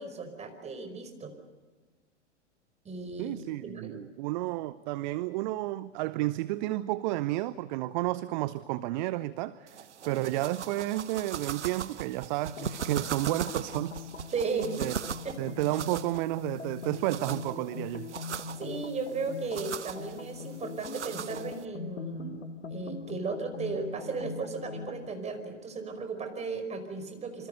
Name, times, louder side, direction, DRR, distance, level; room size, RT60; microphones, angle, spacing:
voice 1, 0.0-1.3 2.8-4.0 10.0-10.3 14.3-14.8 15.2-15.4 18.5-27.5, right 4 dB, 20° right, 5.1 m, -36 dB
voice 2, 3.2-14.1 14.8-14.9 15.4-18.1, right 17 dB, 40° right, 0.8 m, -31 dB
sound 1, 9.7-21.7, right 8 dB, 70° right, 1.1 m, -40 dB
sound 2, 12.5-25.2, left 5 dB, 75° left, 1.6 m, -42 dB
27.5 x 25.5 x 6.7 m
figure-of-eight pair, 100°, 36 cm